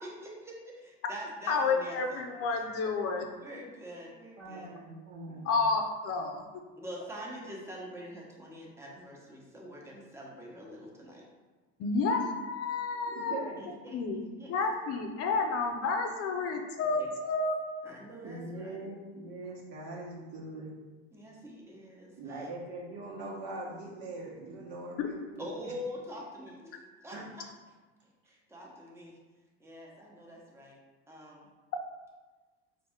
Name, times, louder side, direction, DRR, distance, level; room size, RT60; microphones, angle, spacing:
voice 1, 0.0-2.2 2.5-2.6 3.4-4.7 6.8-11.2 13.6-14.0 14.4-14.5 17.0-17.1 17.8-18.9 21.1-22.1 25.4-26.8 27.0-27.4 28.3-29.1 29.6-30.8 31.1-31.5, equal, 10° right, -4 dB, 0.9 m, -45 dB
voice 2, 1.5-3.3 5.4-6.4 11.8-13.5 13.9-14.2 14.5-17.5 25.0-25.1, left 4 dB, 50° left, 3 dB, 0.6 m, -30 dB
voice 3, 4.4-5.5 13.1-13.5 18.2-20.7 22.2-25.7 27.1-27.2, right 2 dB, 65° right, -4 dB, 1.3 m, -42 dB
4.0 x 2.7 x 3.5 m, 1.3 s
supercardioid pair, 105°, 31 cm